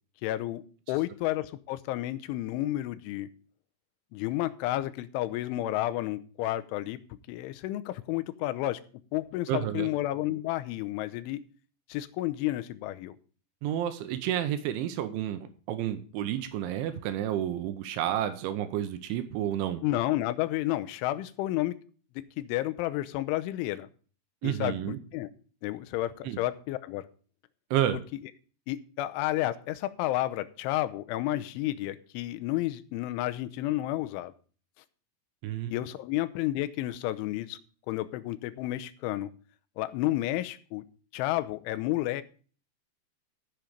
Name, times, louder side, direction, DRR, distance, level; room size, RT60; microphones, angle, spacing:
voice 1, 0.2-0.6 0.9-3.3 4.1-7.0 7.3-8.8 9.1-11.4 11.9-13.2 19.8-21.8 22.4-23.9 24.4-24.8 25.1-25.3 25.6-27.1 28.7-34.3 35.7-37.6 37.9-39.3 39.8-40.9 41.1-42.2, left 15 dB, 85° left, 13 dB, 3.2 m, -31 dB
voice 2, 9.5-9.9 13.6-19.8 24.4-25.0 26.3-26.4 27.7-28.0 35.4-35.7, right 11 dB, 80° right, 9 dB, 3.3 m, -30 dB
14.5 x 7.4 x 5.1 m, 0.40 s
omnidirectional pair, 5.4 m